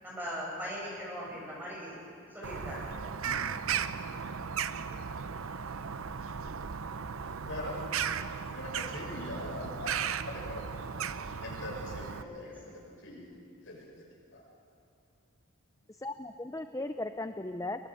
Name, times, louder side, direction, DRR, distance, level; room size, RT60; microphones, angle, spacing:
voice 1, 0.0-2.0 2.3-2.8 12.2-12.3, equal, 10° right, -5 dB, 7.6 m, -39 dB
Bird vocalization bird call bird song, 2.4-12.2, right 7 dB, 85° right, 0.7 m, -36 dB
voice 2, 3.2-3.6 7.4-7.8 8.5-13.2 13.7-14.1 14.3-14.4, left 1 dB, 65° left, -2 dB, 6.9 m, -42 dB
voice 3, 15.9-17.9, left 2 dB, 15° left, 8 dB, 0.5 m, -37 dB
23.0 x 20.0 x 7.7 m, 2.6 s
head